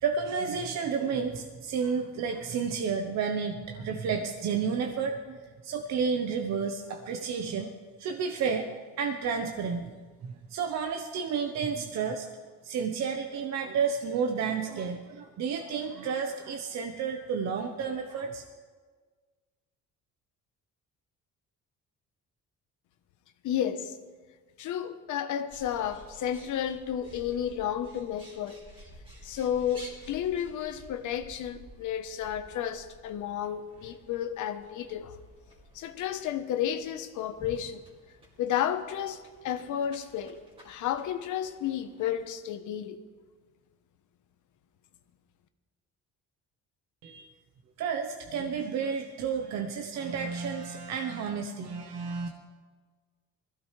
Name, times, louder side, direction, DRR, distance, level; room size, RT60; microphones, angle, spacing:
voice 1, 0.0-5.4 5.6-7.7 8.0-9.9 10.2-12.4 12.6-18.4 47.0-47.2 47.8-52.3, right 6 dB, 55° right, 4 dB, 1.0 m, -31 dB
voice 2, 23.4-24.0 24.6-28.6 29.2-35.1 35.7-37.8 38.4-40.4 40.6-43.0, left 10 dB, 70° left, 9 dB, 1.1 m, -32 dB
Bird, 25.5-42.3, equal, 15° right, 2.6 m, -53 dB
21.0 x 15.5 x 3.3 m, 1.5 s
cardioid pair, 170°, 31 cm